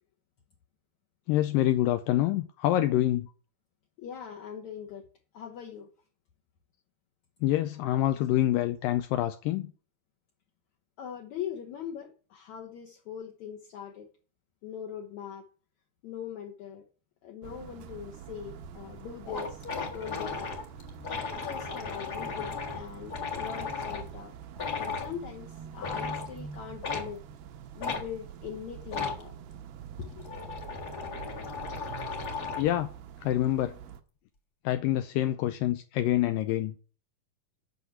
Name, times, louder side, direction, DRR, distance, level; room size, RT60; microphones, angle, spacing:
voice 1, 1.3-3.3 7.4-9.7 32.6-32.9 33.2-33.8 34.7-36.7, left 13 dB, 85° left, 2.0 m, -26 dB
voice 2, 4.0-5.0 5.3-5.9 11.0-14.1 14.6-15.4 16.0-16.8 17.2-20.6 21.3-24.3 24.8-27.2 27.8-29.3 30.0-30.6, left 8 dB, 65° left, 1.9 m, -41 dB
sound 1, 17.4-34.0, right 8 dB, 75° right, 2.5 m, -46 dB
sound 2, 18.6-18.7 19.0-19.1 19.3-24.1 24.5-25.1 25.8-26.3 26.8-27.1 27.8-28.0 28.9-29.2 30.0-32.7, left 5 dB, 45° left, 1.2 m, -35 dB
8.2 x 6.1 x 7.9 m
omnidirectional pair, 4.6 m